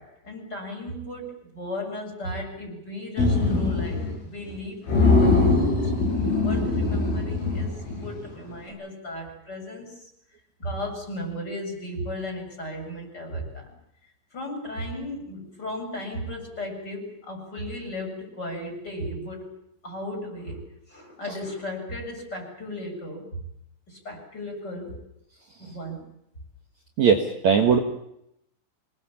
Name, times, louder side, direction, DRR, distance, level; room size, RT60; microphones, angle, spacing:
voice 1, 0.0-5.9 6.4-10.1 10.6-13.7 14.3-19.5 19.8-23.4 23.9-25.0 25.6-26.1, left 1 dB, 20° left, 2 dB, 7.6 m, -35 dB
sound 1, 3.2-4.2 4.5-4.6 4.9-8.3, left 3 dB, 80° left, 10.0 m, -22 dB
voice 2, 27.0-27.8, right 6 dB, 70° right, 3 dB, 1.7 m, -19 dB
26.0 x 22.0 x 7.3 m, 0.79 s
omnidirectional pair, 5.7 m